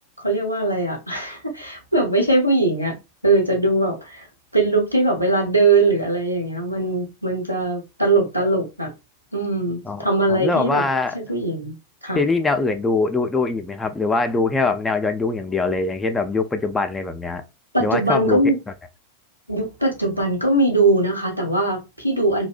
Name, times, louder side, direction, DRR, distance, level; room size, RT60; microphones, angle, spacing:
voice 1, 0.2-3.0 3.2-4.2 4.5-8.9 9.3-10.8 11.1-11.7 12.0-12.2 17.7-18.6 19.5-22.5, right 2 dB, 90° right, 0.7 m, -21 dB
voice 2, 9.9-11.2 12.1-17.4 17.8-18.4, left 3 dB, 10° left, 0.3 m, -22 dB
2.6 x 2.1 x 2.3 m
figure-of-eight pair, 90°, 0 cm